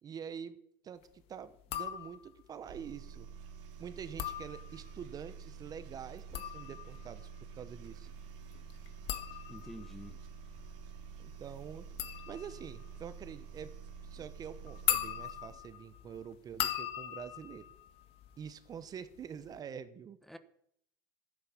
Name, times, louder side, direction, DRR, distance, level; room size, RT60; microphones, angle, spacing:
voice 1, 0.0-0.6 0.8-1.0 1.3-3.3 3.8-7.3 7.5-8.1 11.2-11.9 12.3-13.7 14.0-17.7 18.4-20.2, right 7 dB, 30° right, 0.9 m, -46 dB
sound 1, 1.6-2.5 4.0-5.1 6.1-18.8 19.1-19.6, left 12 dB, 50° left, 1.7 m, -40 dB
sound 2, 2.7-15.6, right 7 dB, 60° right, 2.4 m, -49 dB
voice 2, 9.5-10.2 20.3-20.4, equal, ahead, 1.1 m, -47 dB
12.5 x 10.0 x 7.3 m
supercardioid pair, 110°, 12 cm